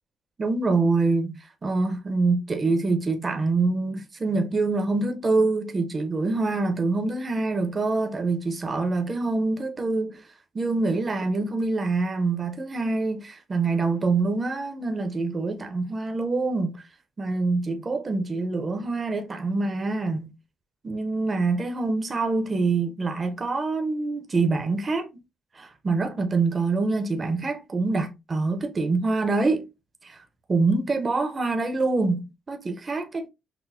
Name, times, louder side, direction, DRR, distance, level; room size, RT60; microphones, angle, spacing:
voice 1, 0.4-10.3 10.5-16.9 17.2-20.3 20.8-25.1 25.5-29.6 30.0-30.2 30.5-33.3, right 3 dB, 30° right, 0.7 m, -25 dB
5.9 x 2.1 x 2.6 m
cardioid pair, 90°, 0 cm